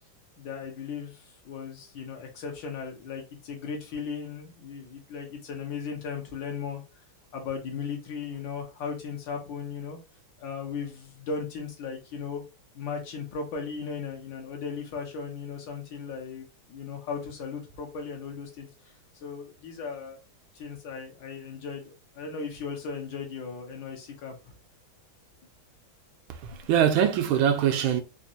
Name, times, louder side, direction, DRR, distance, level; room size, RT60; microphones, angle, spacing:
voice 1, 0.4-6.8 7.3-10.0 10.4-12.4 12.7-18.7 19.1-20.2 20.5-24.5, left 5 dB, 70° left, 1.6 m, -37 dB
voice 2, 26.3-28.0, right 9 dB, 80° right, 1.4 m, -23 dB
4.1 x 2.6 x 2.7 m
omnidirectional pair, 2.2 m